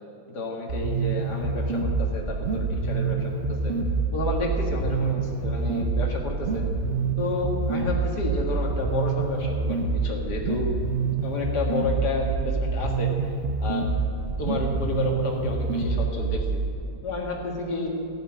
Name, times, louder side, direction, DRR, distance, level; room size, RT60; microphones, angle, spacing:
voice 1, 0.3-3.7 4.1-6.6 7.2-10.7 11.2-13.1 13.6-13.9 14.4-16.6 17.0-17.9, left 2 dB, 80° left, 0 dB, 2.4 m, -30 dB
sound 1, 0.7-16.7, right 4 dB, 50° right, 1.2 m, -26 dB
15.5 x 7.2 x 9.8 m, 2.7 s
omnidirectional pair, 1.7 m